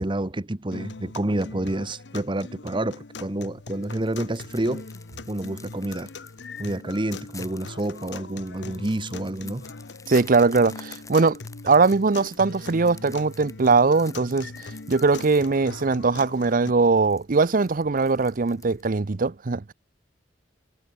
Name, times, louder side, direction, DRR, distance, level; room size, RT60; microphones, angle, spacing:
voice 1, 0.0-4.9 5.3-6.1 6.6-9.7, right 1 dB, 25° right, 1.1 m, -29 dB
sound 1, 0.7-16.7, left 3 dB, 75° left, 1.0 m, -41 dB
sound 2, 3.5-19.0, left 5 dB, 20° left, 5.1 m, -49 dB
voice 2, 10.1-11.4 11.6-19.7, right 4 dB, 50° right, 0.6 m, -21 dB
head